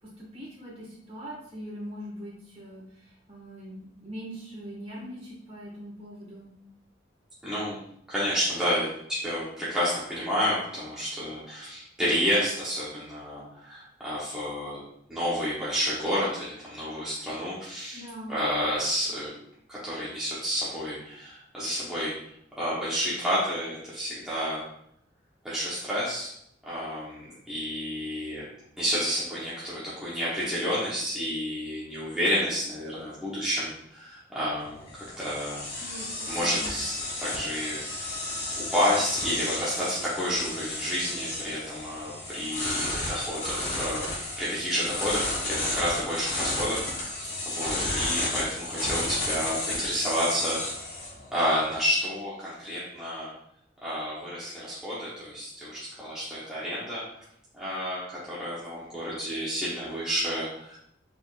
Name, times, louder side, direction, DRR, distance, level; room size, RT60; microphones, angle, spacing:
voice 1, 0.0-6.5 17.9-18.4 35.8-36.6, equal, 30° right, -6 dB, 1.6 m, -42 dB
voice 2, 7.4-7.8 8.1-14.8 15.1-18.0 18.3-19.3 19.7-22.1 22.6-24.6 25.4-26.3 26.7-28.5 28.8-36.0 36.3-38.1 38.6-50.6 51.3-53.3 53.8-57.0 57.5-60.9, equal, 5° right, -10 dB, 0.8 m, -30 dB
sound 1, 34.6-51.8, left 2 dB, 35° left, 1.5 m, -33 dB
4.2 x 3.6 x 2.4 m, 0.73 s
head